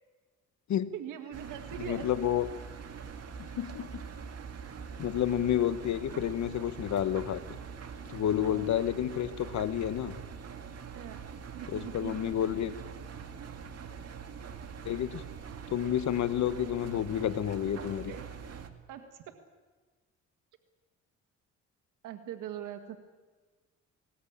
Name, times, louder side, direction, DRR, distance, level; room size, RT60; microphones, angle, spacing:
voice 1, 0.9-2.1 8.4-8.7 10.9-11.2 11.5-12.4 18.1-18.2 18.9-19.4 22.0-23.0, right 10 dB, 90° right, 6 dB, 1.7 m, -42 dB
Engine, 1.3-18.7, right 6 dB, 55° right, 2.1 m, -44 dB
voice 2, 1.9-2.5 3.6-4.0 5.0-7.4 8.1-10.1 11.7-12.7 14.8-15.2 15.7-18.1, left 10 dB, 65° left, 12 dB, 1.3 m, -30 dB
20.5 x 19.5 x 8.7 m, 1.4 s
cardioid pair, 90°, 30 cm